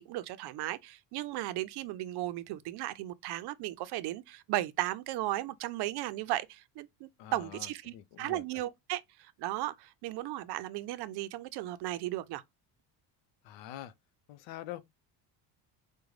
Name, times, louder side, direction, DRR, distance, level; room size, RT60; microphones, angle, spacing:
voice 1, 0.0-12.4, right 15 dB, 60° right, 0.5 m, -36 dB
voice 2, 7.2-8.6 13.4-13.9 14.3-14.8, left 13 dB, 75° left, 0.7 m, -45 dB
5.0 x 2.2 x 3.1 m
cardioid pair, 120°, 45 cm